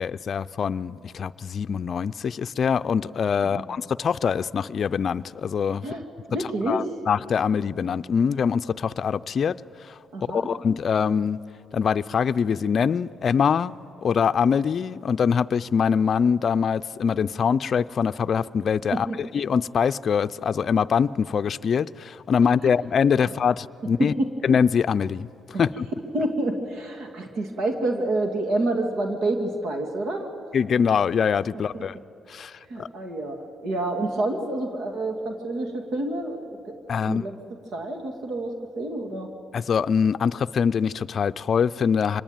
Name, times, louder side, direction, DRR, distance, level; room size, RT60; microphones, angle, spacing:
voice 1, 0.0-5.9 6.7-9.5 9.8-10.0 10.3-11.4 11.7-19.1 19.3-24.1 24.4-25.3 25.6-25.9 30.5-31.9 32.3-32.9 36.9-37.2 39.5-42.2, left 6 dB, 50° left, 12 dB, 0.5 m, -23 dB
voice 2, 6.3-6.9 10.1-10.5 18.9-19.2 24.0-24.3 25.5-25.6 26.1-30.3 31.7-31.8 32.7-37.3 37.7-39.3, right 2 dB, 70° right, 3 dB, 2.4 m, -28 dB
25.0 x 20.0 x 9.0 m, 2.9 s
cardioid pair, 90°, 0 cm